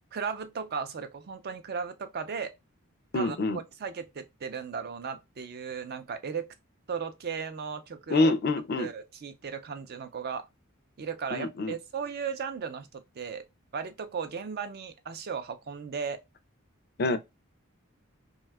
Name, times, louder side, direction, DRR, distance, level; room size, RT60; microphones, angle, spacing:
voice 1, 0.1-2.5 3.1-3.4 3.8-6.5 6.9-8.3 8.8-10.5 11.0-13.4 13.7-16.2, right 6 dB, 50° right, 0.4 m, -36 dB
voice 2, 3.1-3.6 8.1-8.9 11.3-11.8 17.0-17.2, left 2 dB, 45° left, 0.4 m, -26 dB
2.7 x 2.3 x 3.2 m
head